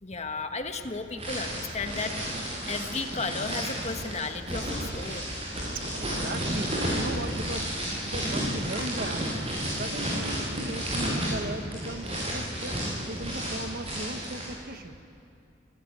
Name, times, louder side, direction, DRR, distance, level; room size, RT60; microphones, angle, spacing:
voice 1, 0.0-5.3, left 4 dB, 35° left, 6 dB, 1.5 m, -34 dB
sound 1, 1.2-14.5, equal, 35° right, 7.6 m, -32 dB
voice 2, 6.0-9.3 9.7-15.0, right 1 dB, 50° right, 8 dB, 1.4 m, -38 dB
26.0 x 18.0 x 9.6 m, 2.7 s
head